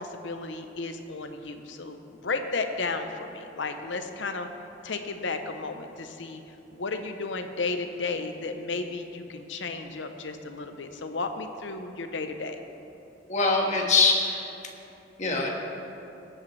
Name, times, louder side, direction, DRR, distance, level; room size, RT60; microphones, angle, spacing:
voice 1, 0.0-4.5 4.8-12.6, left 3 dB, 75° left, 7 dB, 0.8 m, -33 dB
voice 2, 13.3-14.4 15.2-15.5, left 3 dB, 40° left, -1 dB, 1.5 m, -23 dB
18.5 x 8.7 x 3.3 m, 2.8 s
head